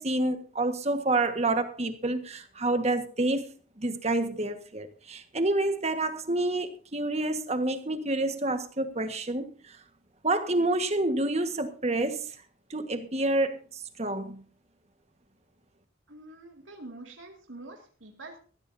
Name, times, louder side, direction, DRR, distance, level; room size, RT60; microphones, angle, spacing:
voice 1, 0.0-3.5 3.8-9.8 10.2-12.3 12.7-14.4, right 2 dB, 35° right, 1.5 m, -28 dB
voice 2, 16.1-18.4, right 2 dB, 85° right, 2.3 m, -46 dB
21.0 x 15.0 x 2.7 m
head